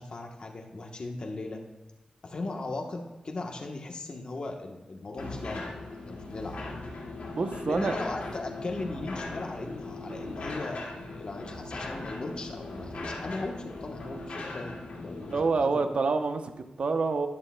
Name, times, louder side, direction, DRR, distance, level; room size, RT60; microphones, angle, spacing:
voice 1, 0.0-1.6 2.2-6.6 7.7-15.9, left 2 dB, 40° left, 2 dB, 1.1 m, -38 dB
sound 1, 5.2-15.4, left 2 dB, 85° left, 2.2 m, -39 dB
voice 2, 7.3-8.0 15.3-17.3, right 4 dB, 55° right, 7 dB, 0.8 m, -27 dB
11.5 x 11.0 x 2.3 m, 1.1 s
wide cardioid pair, 160°, 2 cm